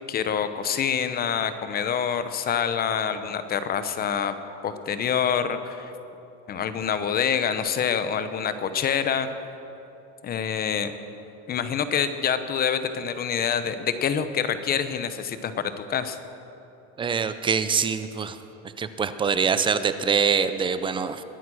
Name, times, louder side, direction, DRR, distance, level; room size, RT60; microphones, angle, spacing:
voice 1, 0.0-4.4 4.6-5.9 6.5-9.3 10.2-10.9 11.5-16.2, left 7 dB, 25° left, 11 dB, 0.8 m, -26 dB
voice 2, 17.0-18.4 18.8-21.2, right 6 dB, 15° right, 11 dB, 0.4 m, -24 dB
22.0 x 9.2 x 6.3 m, 2.9 s
supercardioid pair, 150°, 36 cm